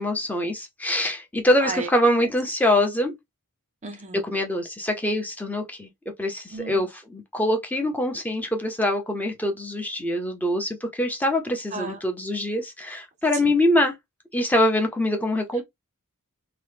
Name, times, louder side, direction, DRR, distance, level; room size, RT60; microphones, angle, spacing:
voice 1, 0.0-3.2 4.1-5.9 6.2-14.0 14.3-15.6, left 1 dB, 5° left, 0.6 m, -24 dB
voice 2, 3.8-4.3 6.5-6.8 11.7-12.0, right 4 dB, 30° right, 0.4 m, -33 dB
2.9 x 2.1 x 3.3 m
head